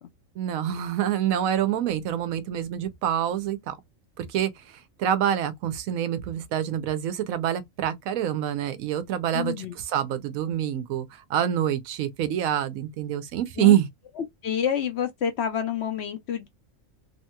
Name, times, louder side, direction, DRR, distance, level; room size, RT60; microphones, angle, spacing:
voice 1, 0.4-3.8 4.2-13.9, right 10 dB, 80° right, 1.1 m, -26 dB
voice 2, 9.3-9.7 13.6-13.8 14.4-16.5, left 8 dB, 60° left, 0.8 m, -28 dB
3.1 x 2.8 x 2.2 m
omnidirectional pair, 1.4 m